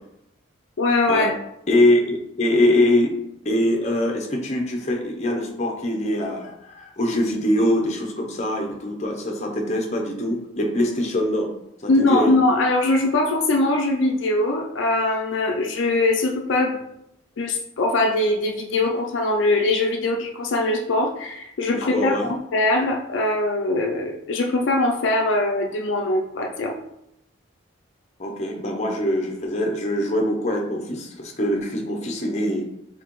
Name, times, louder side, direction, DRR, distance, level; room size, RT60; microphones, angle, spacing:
voice 1, 0.8-1.3 11.9-16.8 17.4-26.8, left 2 dB, 65° left, 1 dB, 0.4 m, -22 dB
voice 2, 1.7-3.1 3.4-11.5 11.8-12.3 21.7-22.3 28.2-32.7, left 1 dB, 35° left, 2 dB, 0.7 m, -23 dB
4.6 x 3.8 x 3.0 m, 0.81 s
head